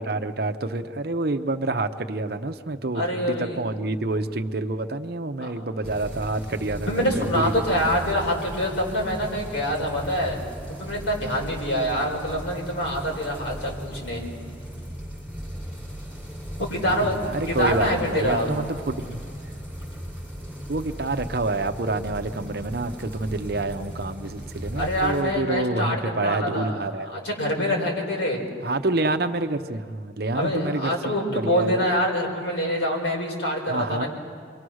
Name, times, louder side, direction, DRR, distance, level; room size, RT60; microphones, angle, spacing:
voice 1, 0.0-7.5 17.0-19.2 20.7-27.3 28.6-31.8 33.7-34.0, right 2 dB, 55° right, 8 dB, 0.8 m, -28 dB
voice 2, 2.9-3.7 5.4-5.7 6.9-10.4 10.8-14.3 16.6-18.5 24.8-28.4 30.3-34.1, equal, 70° left, 0 dB, 5.4 m, -25 dB
sound 1, 5.8-25.2, equal, 5° left, 7.9 m, -37 dB
28.5 x 23.0 x 6.4 m, 2.1 s
head